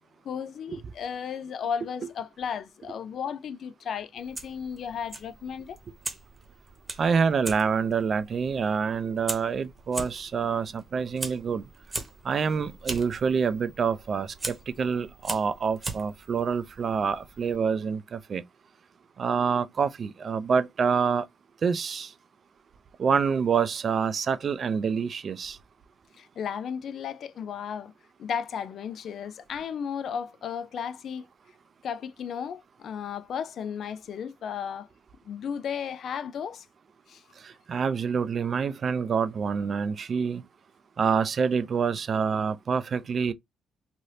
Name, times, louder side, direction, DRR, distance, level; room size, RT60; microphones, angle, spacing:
voice 1, 0.3-5.8 26.2-27.9 28.2-31.2 31.8-34.9 35.3-36.6 37.1-37.2, left 7 dB, 65° left, 0.3 m, -34 dB
Fire, 4.2-17.6, right 3 dB, 25° right, 1.0 m, -40 dB
voice 2, 7.0-11.6 12.2-18.4 19.2-21.3 21.6-22.1 23.0-25.6 37.4-40.4 41.0-43.3, right 6 dB, 50° right, 0.4 m, -27 dB
3.2 x 2.6 x 2.6 m
cardioid pair, 90°, 0 cm